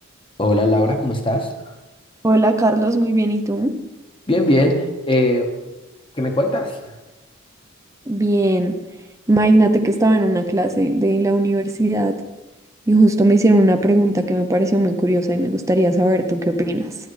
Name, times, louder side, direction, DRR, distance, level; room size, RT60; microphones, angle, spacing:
voice 1, 0.4-1.5 4.3-5.5 6.2-6.8, left 1 dB, 25° left, 3 dB, 1.1 m, -19 dB
voice 2, 2.2-3.8 8.1-8.8 9.3-12.2 12.9-16.9, right 1 dB, 15° right, 5 dB, 0.6 m, -17 dB
13.5 x 10.5 x 3.2 m, 1.1 s
head